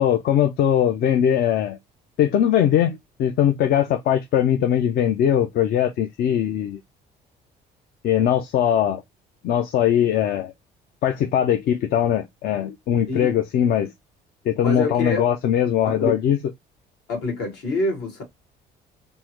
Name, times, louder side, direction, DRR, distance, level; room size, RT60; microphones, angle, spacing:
voice 1, 0.0-1.8 2.2-6.8 8.0-9.0 9.4-10.5 11.0-13.9 14.5-16.4, left 10 dB, 65° left, 0.5 m, -20 dB
voice 2, 14.6-15.3 15.9-16.2 17.1-18.2, left 2 dB, 80° left, 1.8 m, -26 dB
3.6 x 2.1 x 2.9 m
cardioid pair, 110°, 17 cm